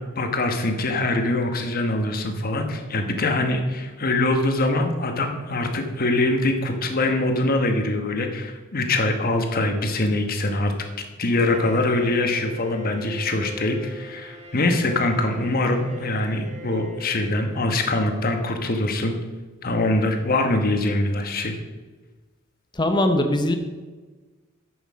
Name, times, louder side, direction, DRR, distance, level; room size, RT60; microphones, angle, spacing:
voice 1, 0.1-10.7 11.2-19.1 19.6-21.6, left 2 dB, 45° left, 5 dB, 1.2 m, -23 dB
Bowed string instrument, 11.4-18.4, right 1 dB, 35° right, 1.7 m, -40 dB
voice 2, 22.8-23.5, left 1 dB, 20° left, 6 dB, 0.8 m, -20 dB
9.5 x 6.4 x 6.2 m, 1.3 s
head